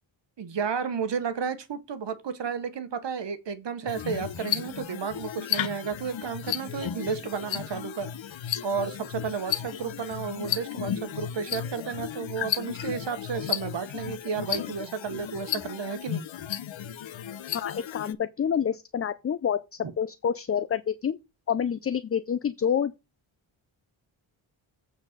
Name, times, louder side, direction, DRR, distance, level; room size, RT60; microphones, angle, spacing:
voice 1, 0.4-8.1 8.6-16.2, right 6 dB, 60° right, 1.3 m, -32 dB
sound 1, 3.9-18.1, left 10 dB, 70° left, 0.8 m, -34 dB
voice 2, 17.5-19.6 20.0-21.2 21.5-22.9, left 8 dB, 30° left, 0.4 m, -27 dB
8.1 x 4.2 x 6.6 m
wide cardioid pair, 125°, 48 cm